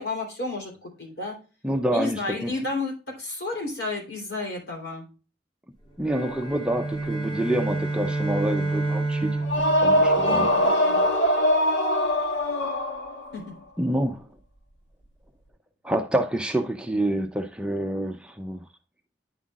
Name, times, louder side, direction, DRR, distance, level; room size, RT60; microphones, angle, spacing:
voice 1, 0.0-1.4 1.9-5.0 10.2-11.0 13.3-13.5, left 3 dB, 60° left, 3.3 m, -32 dB
voice 2, 1.6-2.5 6.0-10.5 13.8-14.3 15.8-18.6, right 1 dB, 5° right, 0.5 m, -27 dB
sound 1, 6.0-10.7, right 2 dB, 30° left, 3.4 m, -29 dB
sound 2, 9.4-13.4, equal, 90° left, 1.4 m, -22 dB
9.4 x 5.6 x 2.4 m
head